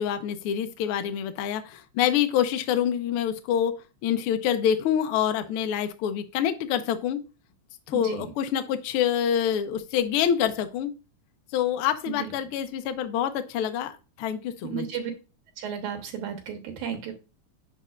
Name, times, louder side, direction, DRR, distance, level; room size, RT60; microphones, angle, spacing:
voice 1, 0.0-3.7 4.0-7.2 7.9-10.9 11.5-14.9, left 9 dB, 90° left, 8 dB, 1.2 m, -26 dB
voice 2, 7.9-8.3 12.1-12.3 14.6-15.1 15.6-17.1, right 8 dB, 90° right, 5 dB, 2.7 m, -33 dB
9.9 x 4.1 x 2.4 m, 0.31 s
omnidirectional pair, 3.3 m